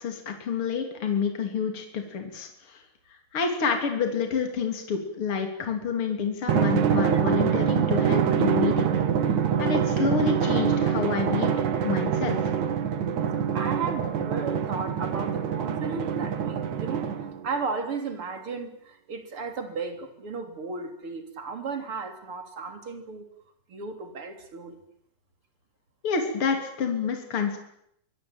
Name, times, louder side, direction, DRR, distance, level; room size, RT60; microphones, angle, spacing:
voice 1, 0.0-2.8 3.3-8.9 9.6-11.6 11.8-12.5 26.0-27.6, left 5 dB, 45° left, 4 dB, 4.1 m, -28 dB
Drum, 6.5-17.5, right 8 dB, 70° right, 3.2 m, -25 dB
voice 2, 13.5-17.1 17.4-23.3 23.7-24.8, right 4 dB, 45° right, 6 dB, 4.0 m, -34 dB
24.5 x 23.5 x 9.0 m, 0.75 s
omnidirectional pair, 3.6 m